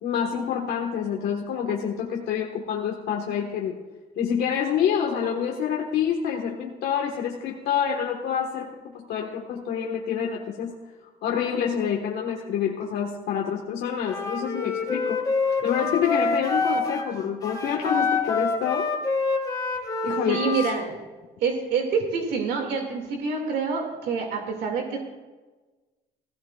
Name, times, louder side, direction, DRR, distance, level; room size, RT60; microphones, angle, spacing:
voice 1, 0.0-3.8 4.2-10.7 11.2-15.2 15.6-18.9 20.0-20.5, left 8 dB, 80° left, -1 dB, 1.5 m, -27 dB
Wind instrument woodwind instrument, 14.0-17.1 17.4-20.8, left 4 dB, 20° left, 2.1 m, -26 dB
voice 2, 20.3-21.0 21.4-25.0, right 5 dB, 75° right, 2 dB, 2.3 m, -27 dB
16.5 x 16.5 x 2.4 m, 1.2 s
cardioid pair, 110°, 17 cm